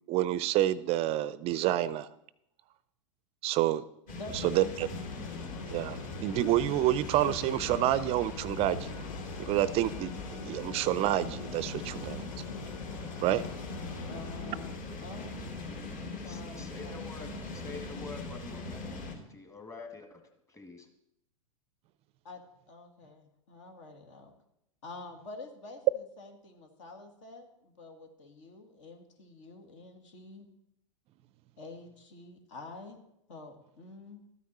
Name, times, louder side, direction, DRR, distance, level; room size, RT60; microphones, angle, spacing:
voice 1, 0.1-2.1 3.4-3.8 4.3-4.9 5.7-9.0 9.4-12.2 13.2-13.4, right 13 dB, 35° right, 18 dB, 0.4 m, -28 dB
sound 1, 4.1-19.1, left 2 dB, 50° left, 3.3 m, -40 dB
voice 2, 4.2-4.5 14.1-14.7 15.0-15.5 16.2-16.9 22.2-22.4 22.7-24.3 24.8-30.5 31.6-33.0 33.3-34.2, left 3 dB, 65° left, 5 dB, 2.1 m, -47 dB
Organ, 4.6-15.4, left 8 dB, 85° left, 0.5 m, -46 dB
voice 3, 16.3-20.2 20.5-20.9, left 4 dB, 20° left, 5 dB, 1.9 m, -47 dB
13.0 x 9.4 x 4.2 m, 0.80 s
hypercardioid pair, 95°, 17 cm